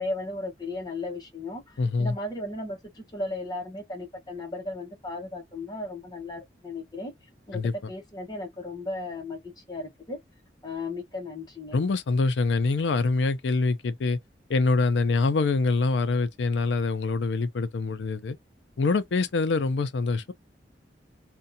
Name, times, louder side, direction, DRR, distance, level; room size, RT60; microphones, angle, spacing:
voice 1, 0.0-1.6 2.0-7.1 7.5-7.6 7.9-9.4 9.7-10.2 10.6-11.8, left 2 dB, 25° left, 0.9 m, -35 dB
voice 2, 1.8-2.2 7.5-7.7 11.7-14.2 14.5-18.4 18.8-20.3, left 3 dB, 75° left, 0.4 m, -25 dB
2.6 x 2.2 x 2.6 m
head